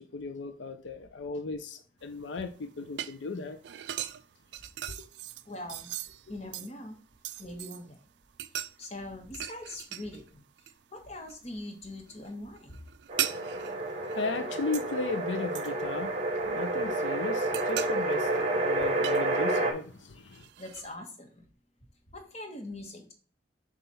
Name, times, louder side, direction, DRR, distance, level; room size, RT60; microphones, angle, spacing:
voice 1, 0.0-3.6 5.0-5.1 6.3-6.4 13.2-20.5, left 3 dB, 75° left, 0.6 m, -36 dB
sound 1, 2.0-7.9 8.3-10.3 10.6-11.4 11.7-15.0 15.5-16.7 17.1-19.8 20.3-20.9, right 12 dB, 65° right, 0.3 m, -39 dB
voice 2, 5.4-5.9 6.3-7.0 7.4-8.0 8.6-10.4 10.9-12.8 20.6-21.5 22.1-23.1, left 1 dB, 35° left, 1.2 m, -42 dB
sound 2, 13.1-19.7, right 2 dB, 35° right, 0.9 m, -30 dB
6.9 x 2.5 x 5.6 m
head